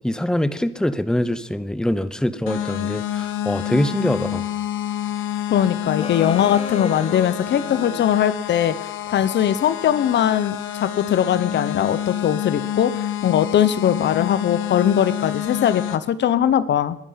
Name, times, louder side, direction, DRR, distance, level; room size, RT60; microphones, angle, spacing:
voice 1, 0.0-4.4, left 1 dB, 5° left, 14 dB, 1.0 m, -23 dB
sound 1, 2.5-16.0, left 11 dB, 80° left, 1.3 m, -28 dB
voice 2, 5.5-8.8 9.1-17.0, left 9 dB, 65° left, 15 dB, 0.9 m, -20 dB
sound 2, 6.0-8.1, left 4 dB, 30° left, 1.3 m, -35 dB
22.0 x 10.5 x 5.7 m, 0.79 s
cardioid pair, 90°, 20 cm